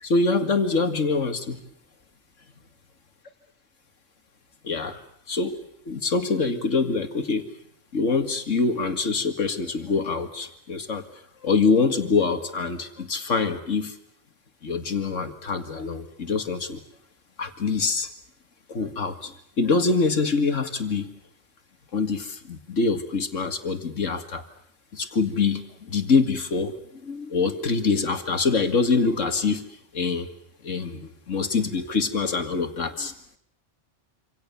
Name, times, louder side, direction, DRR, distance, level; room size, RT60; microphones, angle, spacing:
voice 1, 0.0-1.6 4.6-5.0 5.3-5.6 5.9-7.5 7.9-11.0 11.4-14.0 14.6-16.8 17.4-18.1 18.7-21.2 21.9-24.4 24.9-30.3 30.6-33.1, left 4 dB, 90° left, 8 dB, 2.4 m, -25 dB
27.0 x 27.0 x 7.1 m, 0.67 s
omnidirectional pair, 1.3 m